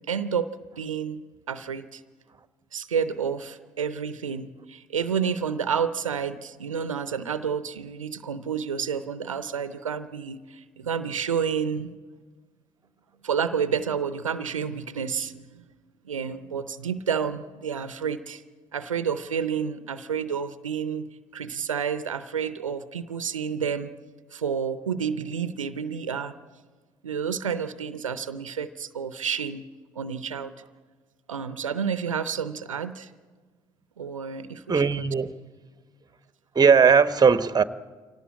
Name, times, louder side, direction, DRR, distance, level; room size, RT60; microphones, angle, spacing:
voice 1, 0.1-1.2 1.5-2.0 2.7-11.9 13.2-15.6 16.0-18.4 18.7-21.1 21.3-23.9 24.3-26.3 27.0-29.6 30.0-30.5 31.3-33.1 34.0-35.1, right 7 dB, 90° right, 0.6 m, -30 dB
voice 2, 34.7-35.3 36.5-37.6, right 6 dB, 25° right, 1.1 m, -18 dB
24.5 x 18.0 x 8.6 m
figure-of-eight pair, 50°, 16 cm